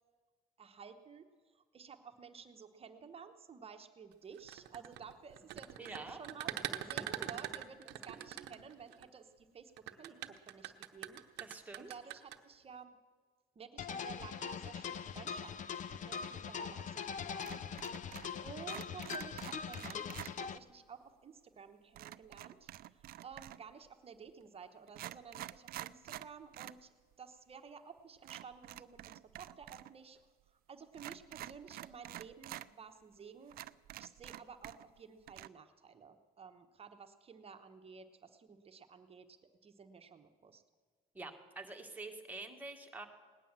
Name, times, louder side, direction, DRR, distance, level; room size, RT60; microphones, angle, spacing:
voice 1, 0.6-13.0 13.5-18.1 18.4-30.2 30.5-33.6 34.0-40.6, right 6 dB, 35° right, 7 dB, 1.1 m, -53 dB
sound 1, 4.4-9.0 9.8-12.4, right 13 dB, 90° right, 0.8 m, -42 dB
voice 2, 5.8-6.2 8.2-8.5 10.1-10.3 11.4-11.9 41.1-43.1, right 3 dB, 10° right, 2 dB, 1.8 m, -47 dB
sound 2, 13.8-20.6, left 7 dB, 50° left, 0.6 m, -42 dB
sound 3, 17.4-18.4 18.6-20.3 22.0-23.7 24.4-24.5 24.9-26.8 27.1-27.2 28.2-29.9 30.2-30.3 30.9-32.7 33.1-33.2 33.5-35.0 35.3-35.5, right 14 dB, 65° right, 0.4 m, -48 dB
18.5 x 10.0 x 7.4 m, 1.5 s
cardioid pair, 110°, 17 cm